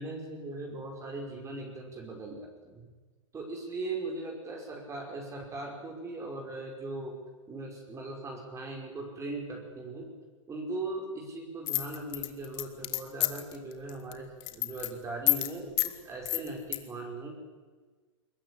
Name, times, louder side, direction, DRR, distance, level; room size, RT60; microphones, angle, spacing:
voice 1, 0.0-2.9 3.3-7.2 7.5-10.1 10.5-17.4, right 2 dB, 15° right, 1 dB, 5.4 m, -39 dB
sound 1, 11.7-13.5 13.9-14.1 14.4-14.9 15.3-15.5 15.8-15.9 16.3-16.8, left 21 dB, 45° left, 2.3 m, -28 dB
22.0 x 20.5 x 10.0 m, 1.4 s
hypercardioid pair, 110°, 17 cm